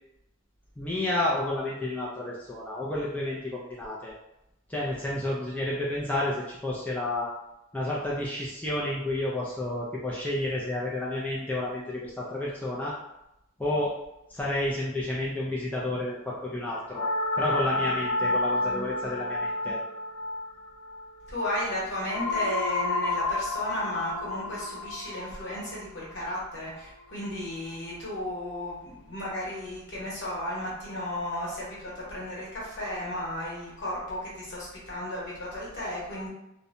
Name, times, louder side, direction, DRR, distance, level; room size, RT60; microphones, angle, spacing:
voice 1, 0.8-4.1 4.7-7.3 7.7-13.0 13.6-13.9 14.3-17.1 17.4-19.8, left 1 dB, 5° left, -6 dB, 0.3 m, -30 dB
sound 1, 16.9-27.1, left 2 dB, 80° left, 0.4 m, -31 dB
voice 2, 21.3-36.3, left 1 dB, 55° left, -6 dB, 1.1 m, -34 dB
2.6 x 2.1 x 2.5 m, 0.86 s
head